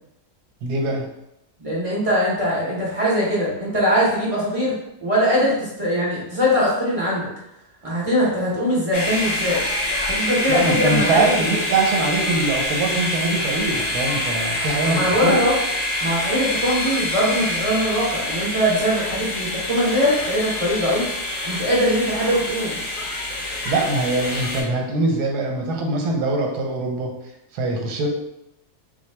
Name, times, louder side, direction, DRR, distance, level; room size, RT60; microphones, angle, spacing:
voice 1, 0.6-1.1 10.5-15.4 23.6-27.1 27.5-28.1, right 3 dB, 85° right, 0 dB, 1.3 m, -23 dB
voice 2, 1.6-7.3 7.8-9.6 10.1-11.2 14.8-15.6 16.0-21.1 21.4-22.8, equal, 35° right, -6 dB, 0.6 m, -21 dB
sound 1, 8.9-24.6, left 1 dB, 45° left, 0.7 m, -26 dB
3.9 x 2.3 x 3.2 m, 0.85 s
omnidirectional pair, 1.7 m